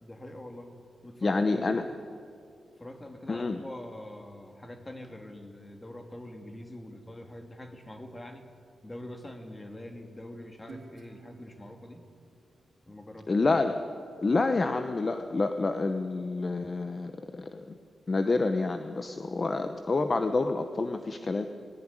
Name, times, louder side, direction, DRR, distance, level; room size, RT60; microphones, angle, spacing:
voice 1, 0.0-0.7 1.0-1.9 2.8-8.4 8.8-12.0 12.9-13.3, left 1 dB, 15° left, 5 dB, 2.3 m, -44 dB
voice 2, 1.2-1.8 3.3-3.6 13.3-13.8 14.2-17.8 18.1-21.5, left 3 dB, 35° left, 7 dB, 0.9 m, -28 dB
Guitar, 10.7-13.9, right 4 dB, 55° right, 3.1 m, -53 dB
19.0 x 17.5 x 9.8 m, 2.3 s
wide cardioid pair, 140°, 0 cm